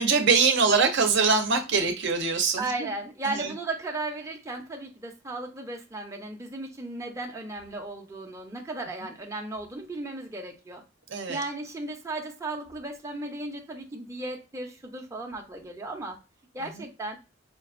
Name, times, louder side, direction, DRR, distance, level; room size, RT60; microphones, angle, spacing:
voice 1, 0.0-2.9 3.2-3.5 11.1-11.4 16.7-16.8, right 5 dB, 65° right, 5 dB, 0.7 m, -23 dB
voice 2, 2.6-10.8 11.3-16.2 16.5-17.2, right 2 dB, 15° right, 0 dB, 0.6 m, -35 dB
5.2 x 2.4 x 2.5 m, 0.27 s
head